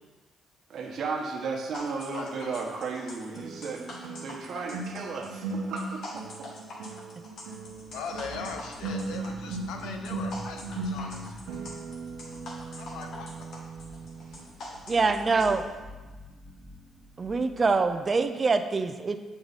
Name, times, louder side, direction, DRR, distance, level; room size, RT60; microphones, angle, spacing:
voice 1, 0.7-6.5, right 4 dB, 65° right, 0 dB, 1.2 m, -35 dB
sound 1, 1.7-15.5, left 2 dB, 65° left, 1.5 m, -44 dB
sound 2, 2.0-2.1 3.4-14.5 14.7-15.0, right 3 dB, 85° right, 0.8 m, -38 dB
voice 2, 2.1-2.8 7.9-11.3 12.7-13.3, left 5 dB, 90° left, 4 dB, 0.8 m, -40 dB
sound 3, 7.6-18.1, left 1 dB, 10° right, 1.1 m, -48 dB
voice 3, 14.9-15.6 17.2-19.2, right 4 dB, 35° right, 9 dB, 0.5 m, -25 dB
7.6 x 4.7 x 4.1 m, 1.3 s
cardioid pair, 90°, 0 cm